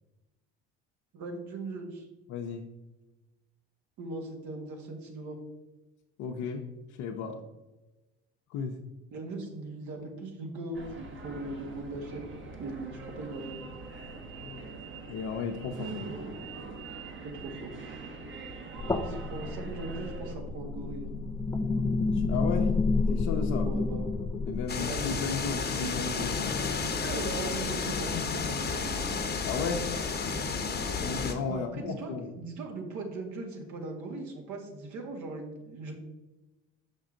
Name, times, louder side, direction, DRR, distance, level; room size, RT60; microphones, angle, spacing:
voice 1, 1.1-2.1 4.0-5.4 9.1-12.3 12.6-13.6 17.2-17.7 19.0-21.2 23.6-24.2 24.8-25.4 26.8-28.9 31.5-35.9, right 3 dB, 60° right, 2 dB, 1.7 m, -39 dB
voice 2, 2.3-2.6 6.2-6.6 7.0-7.4 8.5-8.8 14.4-14.7 15.1-16.1 22.1-22.7 23.1-23.7 24.4-26.5 28.1-28.2 29.4-29.9 31.0-32.3, left 5 dB, 65° left, 2 dB, 0.8 m, -34 dB
sound 1, 10.7-20.4, right 4 dB, 35° right, 1.3 m, -43 dB
sound 2, 18.8-24.6, left 3 dB, 10° left, 0.5 m, -29 dB
sound 3, 24.7-31.3, left 4 dB, 30° left, 1.1 m, -32 dB
6.1 x 5.3 x 3.8 m, 1.0 s
hypercardioid pair, 70°, 32 cm